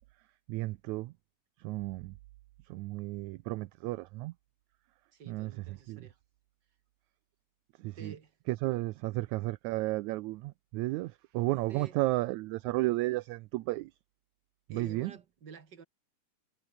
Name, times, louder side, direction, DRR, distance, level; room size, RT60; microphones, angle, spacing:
voice 1, 0.5-1.1 1.6-2.2 2.7-4.3 5.3-6.1 7.7-8.2 8.5-13.9 14.7-15.1, right 19 dB, 75° right, 1.8 m, -33 dB
voice 2, 5.1-6.2 7.9-8.3 11.7-12.0 14.7-15.8, right 6 dB, 35° right, 2.9 m, -49 dB
omnidirectional pair, 3.7 m